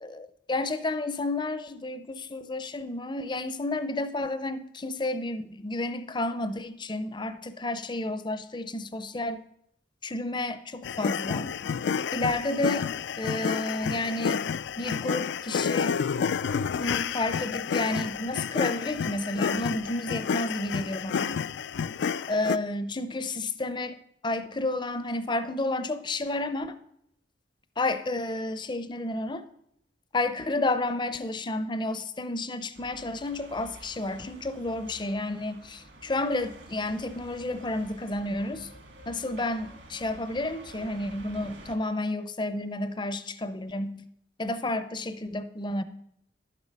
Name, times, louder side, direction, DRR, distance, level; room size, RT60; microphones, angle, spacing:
voice 1, 0.0-9.4 10.0-11.5 12.1-12.9 13.2-14.5 14.8-16.0 16.8-21.4 22.3-24.0 24.2-26.8 27.8-29.5 30.1-38.7 39.1-44.0 44.4-45.8, left 2 dB, 25° left, 11 dB, 0.6 m, -31 dB
sound 1, 10.8-22.6, left 6 dB, 70° left, 0.3 m, -30 dB
sound 2, 32.7-41.7, right 1 dB, 65° right, 1.9 m, -49 dB
11.5 x 7.4 x 5.3 m, 0.74 s
head